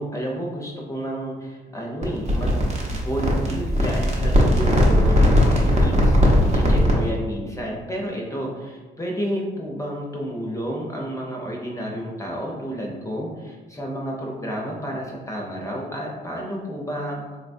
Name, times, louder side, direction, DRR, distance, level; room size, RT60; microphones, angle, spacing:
voice 1, 0.0-2.6 2.9-17.4, equal, 15° left, -2 dB, 0.6 m, -31 dB
sound 1, 2.0-7.1, equal, 35° right, 0.7 m, -18 dB
3.8 x 2.2 x 2.6 m, 1.3 s
cardioid pair, 90°, 20 cm